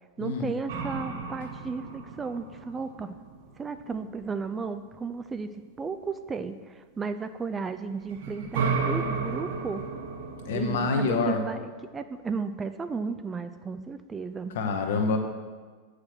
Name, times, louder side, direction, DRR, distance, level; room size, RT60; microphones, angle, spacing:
voice 1, 0.2-3.2 3.6-5.5 5.8-9.8 10.5-14.5, right 4 dB, 15° right, 10 dB, 0.3 m, -34 dB
sound 1, 0.7-4.4 7.9-11.0, right 5 dB, 55° right, 0.9 m, -33 dB
voice 2, 10.5-11.4 14.5-15.2, left 4 dB, 55° left, 4 dB, 1.0 m, -26 dB
8.3 x 5.0 x 6.0 m, 1.5 s
figure-of-eight pair, 90°, 0 cm